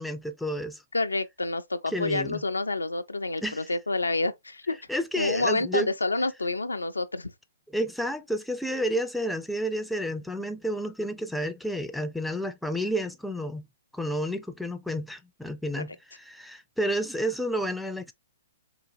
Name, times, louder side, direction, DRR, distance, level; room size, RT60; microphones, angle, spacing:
voice 1, 0.0-0.8 1.9-2.4 3.4-3.6 4.9-5.9 7.7-13.7 13.9-18.1, equal, ahead, 0.4 m, -30 dB
voice 2, 0.9-4.8 5.2-7.3, left 2 dB, 90° left, 0.4 m, -28 dB
3.9 x 2.3 x 2.7 m
figure-of-eight pair, 120°, 0 cm